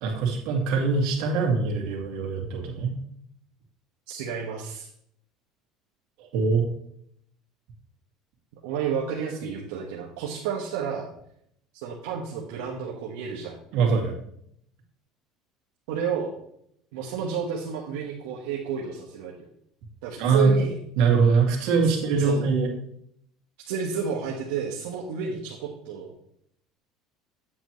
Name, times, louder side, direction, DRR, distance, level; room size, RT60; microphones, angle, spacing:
voice 1, 0.0-2.9 6.2-6.7 13.7-14.1 20.2-20.5 21.0-22.7, right 4 dB, 70° right, 0 dB, 2.3 m, -23 dB
voice 2, 4.1-4.9 8.6-11.1 11.7-13.6 15.9-16.3 16.9-19.3 20.0-20.8 21.8-22.4 22.7-22.8 23.7-26.1, right 7 dB, 85° right, -3 dB, 1.3 m, -31 dB
9.0 x 7.9 x 3.1 m, 0.71 s
cardioid pair, 125°, 0 cm